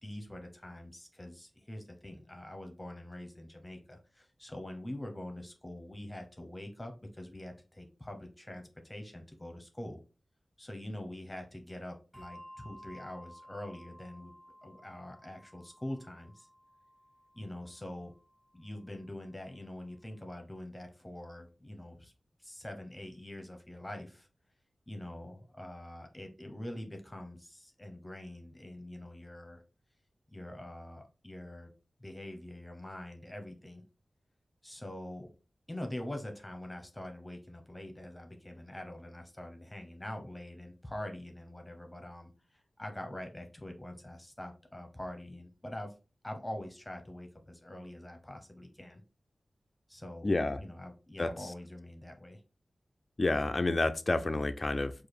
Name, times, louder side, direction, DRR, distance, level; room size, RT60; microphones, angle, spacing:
voice 1, 0.0-10.0 10.6-14.3 14.6-16.5 17.3-18.1 18.5-22.1 22.4-24.3 24.9-29.6 30.3-31.7 32.0-33.8 34.6-35.3 35.7-45.9 46.2-49.0 49.9-52.4, left 1 dB, 15° left, 5 dB, 0.8 m, -44 dB
Bell, 12.1-19.0, equal, 5° right, 1.3 m, -55 dB
voice 2, 50.2-50.6 51.2-51.3 53.2-54.9, left 2 dB, 40° left, 8 dB, 0.4 m, -29 dB
4.8 x 2.5 x 4.1 m, 0.33 s
wide cardioid pair, 90°, 0 cm